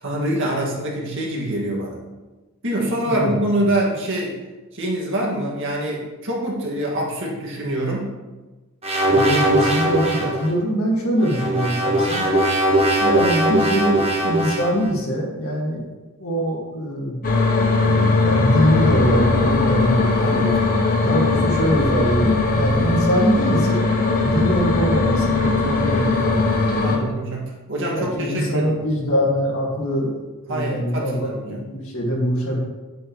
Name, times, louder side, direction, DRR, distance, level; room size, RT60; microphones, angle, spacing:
voice 1, 0.0-2.0 2.6-4.4 4.7-8.1 20.2-20.6 26.8-28.8 30.5-31.6, right 1 dB, 55° right, -3 dB, 2.0 m, -25 dB
sound 1, 8.8-10.4 11.2-14.8, right 1 dB, 25° right, 1.2 m, -20 dB
voice 2, 9.1-12.3 13.0-15.8 16.2-17.2 17.8-20.5 21.0-27.2 27.9-30.2 30.5-32.6, equal, 65° left, -2 dB, 2.2 m, -23 dB
sound 2, 17.2-27.0, left 3 dB, 40° left, 0.9 m, -19 dB
9.2 x 7.9 x 3.2 m, 1.2 s
head